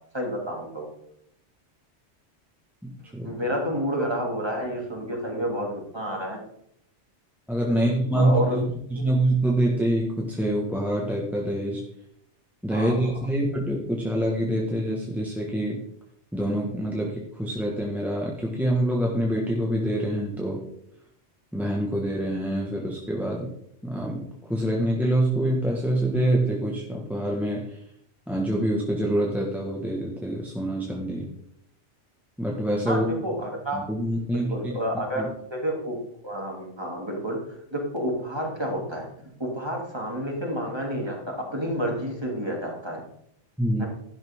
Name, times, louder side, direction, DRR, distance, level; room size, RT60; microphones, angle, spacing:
voice 1, 0.1-0.9 3.2-6.4 7.7-8.6 8.9-9.0 12.7-12.9 32.9-33.8 34.3-36.0 36.2-39.1 39.4-43.0 43.8-43.9, equal, 20° right, -1 dB, 2.9 m, -30 dB
voice 2, 2.8-3.3 7.5-8.6 8.9-11.8 12.6-15.8 16.3-20.6 21.5-23.5 23.8-27.8 28.3-31.3 32.4-33.1 33.7-34.5 35.2-35.3 43.6-43.8, right 1 dB, ahead, -2 dB, 1.5 m, -26 dB
12.0 x 11.0 x 3.7 m, 0.73 s
omnidirectional pair, 1.2 m